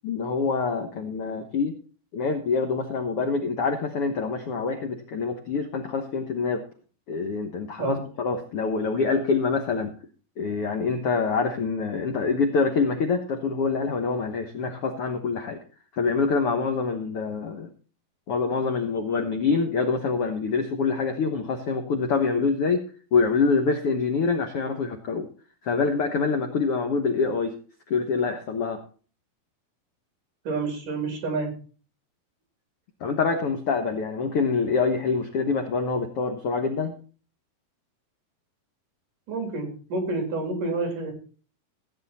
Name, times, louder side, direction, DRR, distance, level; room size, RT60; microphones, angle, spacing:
voice 1, 0.0-1.7 2.1-6.6 7.1-9.9 10.4-15.6 15.9-17.7 18.3-22.8 23.1-25.3 25.6-27.6 27.9-28.8 33.0-36.9, left 4 dB, 65° left, 6 dB, 1.4 m, -25 dB
voice 2, 30.4-31.5 39.3-41.1, right 3 dB, 60° right, 4 dB, 5.0 m, -28 dB
16.0 x 9.1 x 4.2 m, 0.38 s
omnidirectional pair, 4.3 m